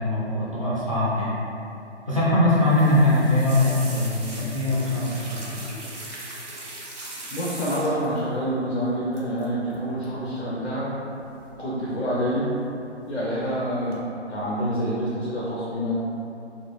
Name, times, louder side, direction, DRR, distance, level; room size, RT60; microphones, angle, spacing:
voice 1, 0.0-1.3 2.1-5.6, left 1 dB, 30° right, -9 dB, 0.4 m, -22 dB
sound 1, 2.6-8.2 9.1-9.5 9.7-10.0 11.2-11.8 12.1-12.7 13.1-13.5 13.9-14.0, right 2 dB, 80° right, 0.7 m, -39 dB
voice 2, 7.3-10.9 11.6-12.5 13.1-14.0 14.3-15.9, equal, 70° left, -7 dB, 0.6 m, -27 dB
2.1 x 2.0 x 3.1 m, 2.8 s
figure-of-eight pair, 140°, 35 cm